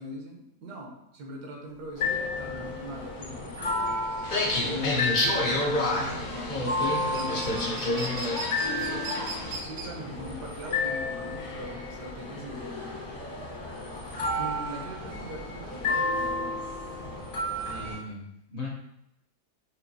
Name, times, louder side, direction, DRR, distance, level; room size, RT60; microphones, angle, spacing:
voice 1, 0.0-3.9 4.7-9.3 9.6-12.9 14.4-16.6, equal, 80° right, 0 dB, 1.4 m, -41 dB
sound 1, 1.8-18.1, right 3 dB, 55° right, 0.7 m, -42 dB
sound 2, 2.0-18.0, left 2 dB, 90° left, 1.9 m, -32 dB
sound 3, 4.2-9.6, left 2 dB, 70° left, 0.4 m, -29 dB
voice 2, 17.6-18.7, left 3 dB, 55° left, -2 dB, 0.9 m, -39 dB
5.4 x 2.5 x 2.7 m, 0.84 s
omnidirectional pair, 1.7 m